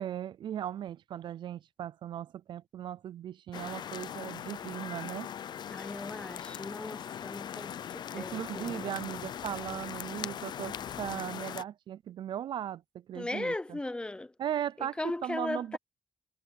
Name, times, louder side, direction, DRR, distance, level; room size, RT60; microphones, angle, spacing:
voice 1, 0.0-5.3 8.1-13.8 14.4-15.8, right 10 dB, 70° right, 0.4 m, -38 dB
sound 1, 3.5-11.6, left 9 dB, 65° left, 0.4 m, -40 dB
voice 2, 5.7-8.9 13.1-14.3 14.8-15.8, left 2 dB, 10° left, 0.6 m, -37 dB
wide cardioid pair, 175°, 8 cm